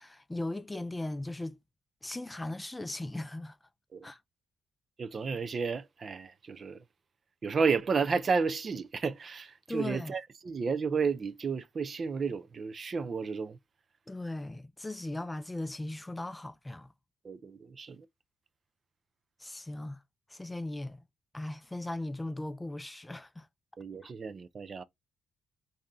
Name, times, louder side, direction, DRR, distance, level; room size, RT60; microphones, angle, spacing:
voice 1, 0.0-1.6 2.0-3.6 4.0-4.2 9.7-10.1 14.1-16.9 19.4-20.0 20.3-21.0 21.3-23.5 24.0-24.1, left 2 dB, 15° left, 0.4 m, -38 dB
voice 2, 5.0-6.8 7.4-13.6 17.2-18.1 23.8-24.8, right 5 dB, 40° right, 0.5 m, -32 dB
4.3 x 2.7 x 3.7 m
cardioid pair, 90°, 0 cm